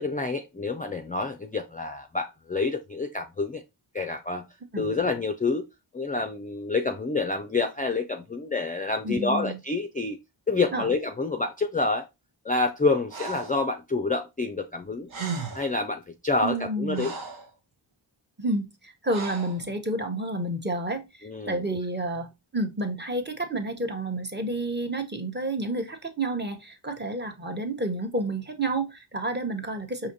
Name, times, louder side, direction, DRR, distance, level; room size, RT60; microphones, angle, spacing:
voice 1, 0.0-3.6 3.9-4.5 4.8-5.7 5.9-10.2 10.5-12.1 12.4-15.1 15.5-17.1 21.2-21.6, left 3 dB, 20° left, 0.4 m, -28 dB
voice 2, 9.0-9.6 10.7-10.9 16.4-17.2 18.4-30.1, right 2 dB, 20° right, 0.8 m, -30 dB
Breathing, 13.1-13.6 14.8-14.9 15.1-15.8 16.5-17.5 19.1-19.6, right 5 dB, 80° right, 1.0 m, -35 dB
4.9 x 2.8 x 2.7 m
cardioid pair, 40°, 48 cm